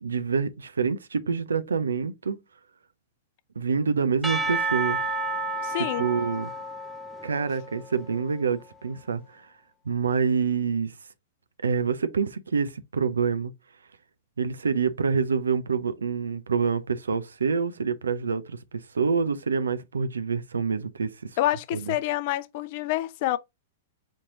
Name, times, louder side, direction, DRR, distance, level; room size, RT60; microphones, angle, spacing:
voice 1, 0.0-2.4 3.6-5.0 6.0-6.5 7.2-9.5 9.9-10.9 11.6-13.5 14.4-21.1, right 5 dB, 80° right, 0.5 m, -26 dB
Percussion / Church bell, 4.2-8.4, right 2 dB, 5° right, 0.6 m, -31 dB
voice 2, 5.6-6.1 21.4-23.4, left 15 dB, 50° left, 0.4 m, -27 dB
4.4 x 3.0 x 3.7 m
figure-of-eight pair, 105°, 0 cm